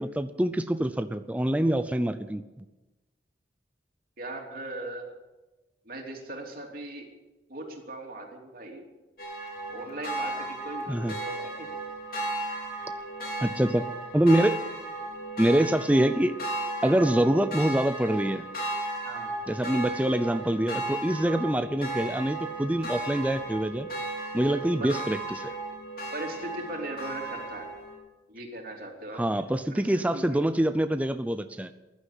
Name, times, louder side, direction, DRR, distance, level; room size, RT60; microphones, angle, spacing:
voice 1, 0.0-2.6 10.9-11.1 13.4-13.9 14.1-14.6 15.4-16.4 16.8-18.4 19.5-23.9 24.3-25.5 29.2-31.7, right 1 dB, 10° right, 9 dB, 0.5 m, -25 dB
voice 2, 4.2-5.2 5.8-7.1 7.5-8.9 9.7-11.7 19.0-19.3 24.8-24.9 26.1-27.7 28.3-29.2 29.7-29.9 30.1-30.4, right 2 dB, 50° right, 1 dB, 3.2 m, -39 dB
sound 1, 9.2-27.9, right 2 dB, 55° left, 4.2 m, -35 dB
14.5 x 11.5 x 8.4 m, 1.1 s
head